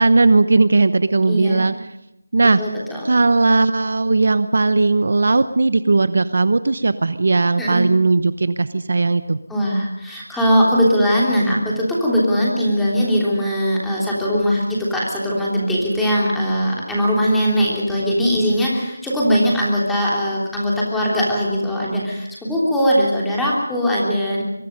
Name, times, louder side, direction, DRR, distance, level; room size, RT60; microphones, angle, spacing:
voice 1, 0.0-1.7 2.3-2.6 3.0-9.4, right 3 dB, 55° right, 13 dB, 0.9 m, -17 dB
voice 2, 1.2-1.6 2.6-3.1 7.6-7.8 9.5-24.4, equal, ahead, -6 dB, 3.3 m, -20 dB
23.5 x 23.0 x 5.4 m, 0.84 s
figure-of-eight pair, 175°, 0 cm